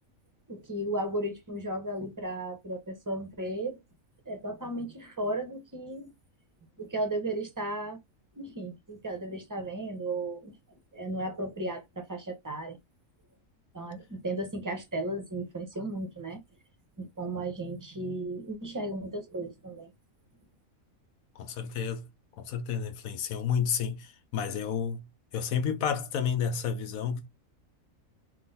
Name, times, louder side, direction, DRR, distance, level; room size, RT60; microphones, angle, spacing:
voice 1, 0.5-3.8 4.3-6.1 6.8-8.0 8.4-10.6 10.9-12.8 13.7-16.4 17.0-19.9, right 1 dB, 20° right, 0.6 m, -35 dB
voice 2, 21.4-22.1 22.4-25.0 25.3-27.3, left 7 dB, 90° left, 1.1 m, -31 dB
3.8 x 2.5 x 3.9 m
omnidirectional pair, 1.4 m